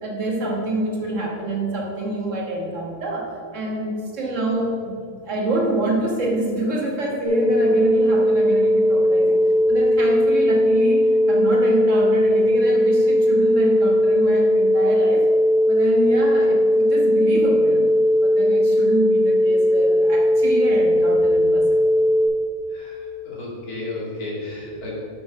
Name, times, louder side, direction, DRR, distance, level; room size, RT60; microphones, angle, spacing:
voice 1, 0.0-15.3 15.7-17.9 18.2-21.8, right 1 dB, 55° right, -1 dB, 1.7 m, -26 dB
sound 1, 7.2-22.3, equal, 15° left, 1.4 m, -18 dB
voice 2, 22.7-25.0, left 2 dB, 75° left, -4 dB, 2.6 m, -33 dB
8.0 x 6.2 x 5.4 m, 2.3 s
omnidirectional pair, 1.6 m